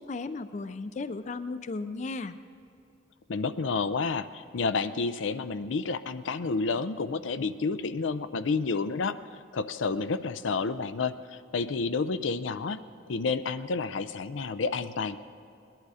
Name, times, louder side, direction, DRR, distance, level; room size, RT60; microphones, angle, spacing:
voice 1, 0.0-2.3, left 3 dB, 40° left, 12 dB, 0.4 m, -35 dB
voice 2, 3.3-9.2 9.5-12.8 13.1-15.2, left 4 dB, 90° left, 12 dB, 0.5 m, -30 dB
20.0 x 11.0 x 4.9 m, 2.6 s
head